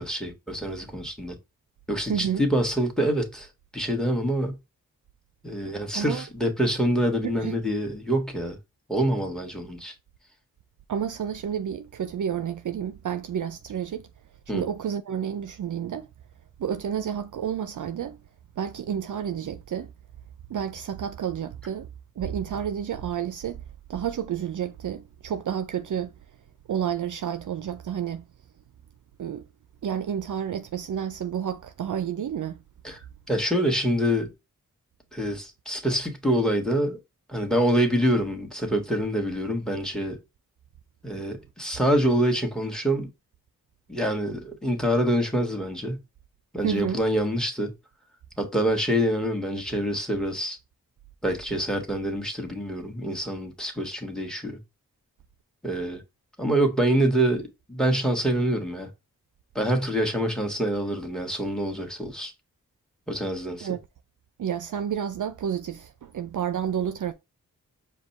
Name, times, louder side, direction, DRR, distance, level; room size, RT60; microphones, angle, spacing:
voice 1, 0.0-1.3 1.9-3.5 3.7-4.6 5.4-8.6 8.9-9.9 14.5-14.6 32.8-33.0 33.3-34.3 35.1-37.0 37.3-40.2 41.0-43.1 43.9-46.0 46.5-47.7 48.4-50.6 51.2-54.6 55.6-56.0 56.4-58.9 59.5-62.3 63.1-63.7, equal, ahead, 1.5 m, -26 dB
voice 2, 2.1-2.4 5.9-6.2 7.2-7.6 10.9-14.1 14.5-16.1 16.6-18.2 18.6-19.9 20.5-21.9 22.2-23.6 23.9-26.1 26.7-28.2 29.2-29.4 29.8-32.6 46.6-47.0 63.6-63.8 64.4-67.1, right 8 dB, 60° right, 0.5 m, -30 dB
5.0 x 2.3 x 4.1 m
cardioid pair, 40°, 36 cm